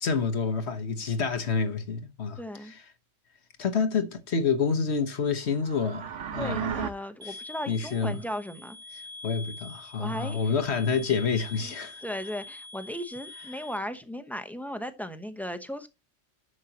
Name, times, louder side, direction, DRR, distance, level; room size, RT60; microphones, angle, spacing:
voice 1, 0.0-2.8 3.6-6.8 7.3-7.4 7.7-8.2 9.2-12.0, left 5 dB, 60° left, 1.4 m, -28 dB
voice 2, 2.4-2.7 6.4-8.8 10.0-10.5 11.6-11.7 12.0-15.9, equal, ahead, 0.8 m, -36 dB
sound 1, 5.5-6.9, right 9 dB, 75° right, 1.2 m, -33 dB
sound 2, 7.2-13.8, left 2 dB, 50° right, 2.2 m, -45 dB
11.0 x 7.4 x 2.9 m
omnidirectional pair, 1.3 m